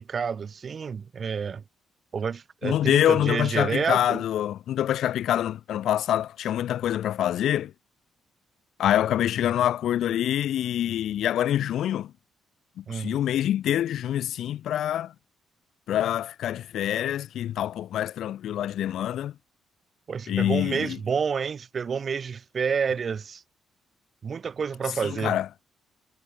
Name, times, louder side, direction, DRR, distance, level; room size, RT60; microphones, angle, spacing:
voice 1, 0.0-1.6 2.1-4.2 12.9-13.2 20.1-23.4 24.2-25.4, right 6 dB, 45° right, 3.3 m, -29 dB
voice 2, 2.6-7.7 8.8-12.1 12.8-15.1 15.9-19.3 20.3-21.0 25.0-25.5, left 11 dB, 75° left, 2.6 m, -25 dB
cardioid pair, 90°, 0 cm